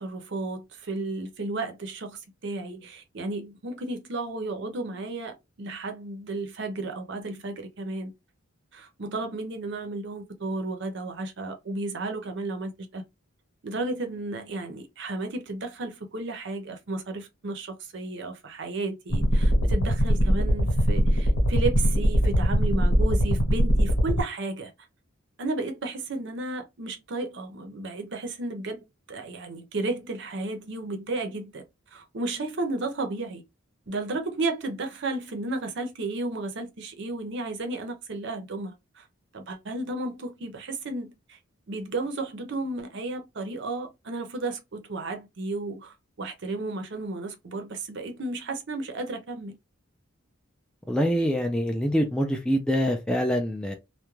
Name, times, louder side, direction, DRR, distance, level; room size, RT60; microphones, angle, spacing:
voice 1, 0.0-8.1 8.7-13.0 13.6-24.7 25.4-31.6 31.9-33.4 33.9-39.0 39.3-41.4 41.7-49.5, right 2 dB, 55° right, 0.6 m, -33 dB
sound 1, 19.1-24.2, equal, 90° left, 1.1 m, -22 dB
voice 2, 50.9-53.7, equal, 5° left, 0.3 m, -25 dB
2.3 x 2.1 x 3.0 m
head